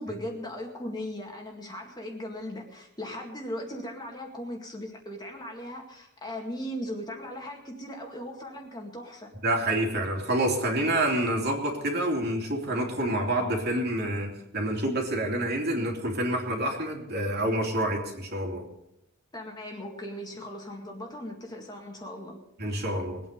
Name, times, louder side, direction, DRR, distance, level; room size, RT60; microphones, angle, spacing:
voice 1, 0.0-9.3 19.3-22.4, left 1 dB, 20° left, 1 dB, 2.1 m, -38 dB
voice 2, 9.4-18.7 22.6-23.2, right 1 dB, 50° right, 1 dB, 3.0 m, -28 dB
22.0 x 9.1 x 5.2 m, 0.83 s
head